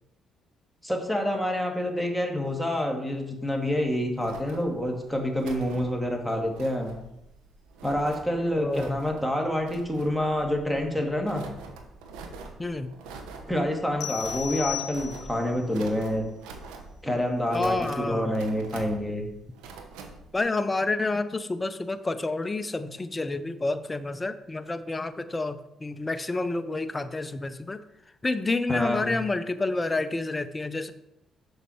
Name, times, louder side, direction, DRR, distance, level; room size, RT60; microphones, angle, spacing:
voice 1, 0.8-7.0 7.8-11.5 13.5-16.3 17.0-19.3 28.7-29.1, equal, ahead, 2 dB, 2.0 m, -27 dB
sound 1, 3.6-20.4, right 3 dB, 85° right, 0.9 m, -45 dB
voice 2, 8.6-9.0 12.6-12.9 17.5-18.3 20.3-27.8 28.2-30.9, left 2 dB, 25° left, 11 dB, 0.7 m, -29 dB
sound 2, 14.0-15.5, left 11 dB, 75° left, 0.5 m, -35 dB
6.7 x 6.5 x 4.5 m, 0.86 s
supercardioid pair, 55°, 0 cm